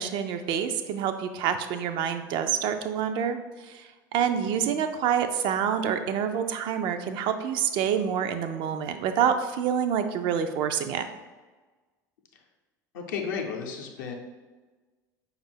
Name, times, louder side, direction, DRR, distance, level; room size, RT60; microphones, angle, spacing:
voice 1, 0.0-3.4 3.7-11.1, right 8 dB, 50° right, 8 dB, 0.4 m, -27 dB
voice 2, 12.9-14.1, left 6 dB, 65° left, 1 dB, 0.6 m, -33 dB
5.1 x 2.4 x 3.3 m, 1.3 s
figure-of-eight pair, 65°, 11 cm